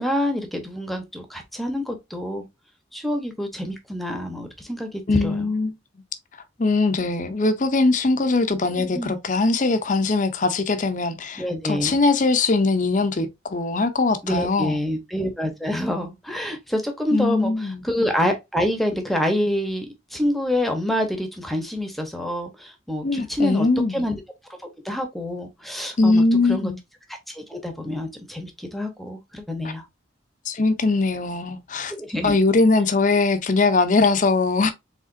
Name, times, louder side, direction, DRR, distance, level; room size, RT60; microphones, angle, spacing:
voice 1, 0.0-2.4 2.9-5.5 8.7-9.1 11.4-12.0 14.2-24.2 24.8-26.2 26.5-26.7 27.3-29.8 31.9-32.4, left 1 dB, ahead, 0.9 m, -27 dB
voice 2, 5.1-5.7 6.6-14.8 17.1-17.8 23.0-24.1 26.0-26.8 30.5-31.9 32.2-34.7, left 3 dB, 40° left, 0.6 m, -21 dB
4.9 x 3.5 x 2.5 m
head